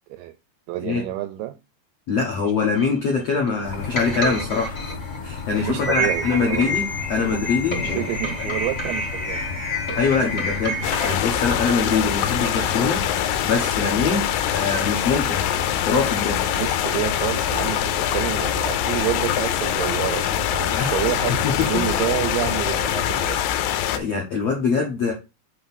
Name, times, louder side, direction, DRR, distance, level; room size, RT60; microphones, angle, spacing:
voice 1, 0.7-1.5 5.6-6.8 7.8-9.4 16.6-23.4, right 15 dB, 85° right, 2.3 m, -29 dB
voice 2, 2.1-4.9 5.2-8.1 8.4-8.5 9.9-13.0 13.4-15.4 15.8-16.4 20.7-20.9 21.4-21.8 23.9-25.1, left 4 dB, 70° left, 1.5 m, -23 dB
sound 1, 2.7-11.1, left 1 dB, 35° left, 0.9 m, -29 dB
sound 2, 3.6-23.3, left 4 dB, 50° left, 1.8 m, -34 dB
sound 3, 10.8-24.0, left 11 dB, 85° left, 3.0 m, -24 dB
7.7 x 3.1 x 6.0 m
omnidirectional pair, 5.1 m